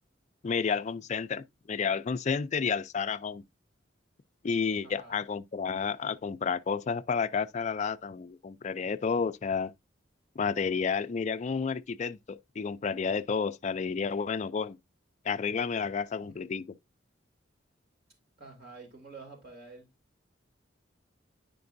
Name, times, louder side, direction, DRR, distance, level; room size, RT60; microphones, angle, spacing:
voice 1, 0.4-3.4 4.4-9.7 10.4-14.8 15.2-16.6, left 5 dB, 35° left, 0.3 m, -31 dB
voice 2, 4.8-5.2 16.2-16.4 18.4-19.9, right 3 dB, 55° right, 2.5 m, -49 dB
9.5 x 5.2 x 2.6 m
head